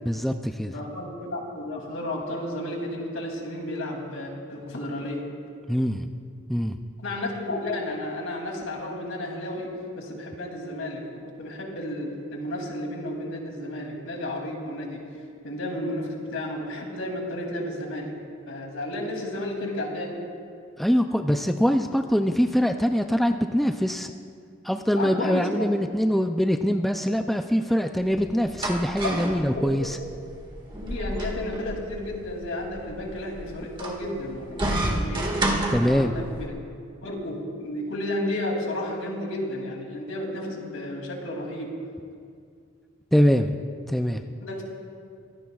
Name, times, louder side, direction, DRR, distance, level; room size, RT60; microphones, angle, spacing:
voice 1, 0.1-0.7 5.7-6.1 6.5-6.8 20.8-24.1 24.6-30.0 35.7-36.1 43.1-43.6 43.9-44.2, equal, ahead, 5 dB, 0.4 m, -23 dB
voice 2, 0.7-5.2 7.0-9.7 9.9-11.0 11.4-15.0 15.4-18.2 18.5-20.1 25.0-25.7 29.0-29.9 30.8-35.4 35.9-36.5 37.0-41.7 44.4-44.6, left 1 dB, 70° left, 0 dB, 2.8 m, -32 dB
sound 1, 28.0-36.5, right 1 dB, 25° right, 1.8 m, -31 dB
24.0 x 17.0 x 2.4 m, 2.3 s
head